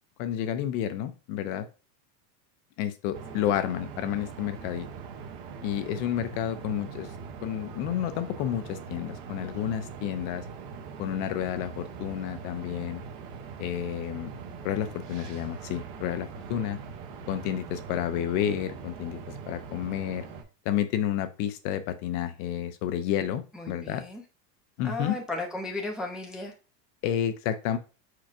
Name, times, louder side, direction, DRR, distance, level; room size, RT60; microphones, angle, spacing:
voice 1, 0.2-1.7 2.8-4.9 5.6-7.1 7.4-10.4 11.0-13.0 13.6-14.3 14.6-16.8 17.3-19.2 19.5-20.2 20.6-24.0 24.8-25.2 27.0-27.8, left 10 dB, 50° left, 10 dB, 0.7 m, -30 dB
sound 1, 3.1-20.4, right 6 dB, 45° right, 1.0 m, -42 dB
voice 2, 23.5-24.2 24.8-26.5, left 2 dB, ahead, 0 dB, 0.5 m, -35 dB
4.7 x 4.6 x 2.4 m, 0.32 s
supercardioid pair, 130°, 49 cm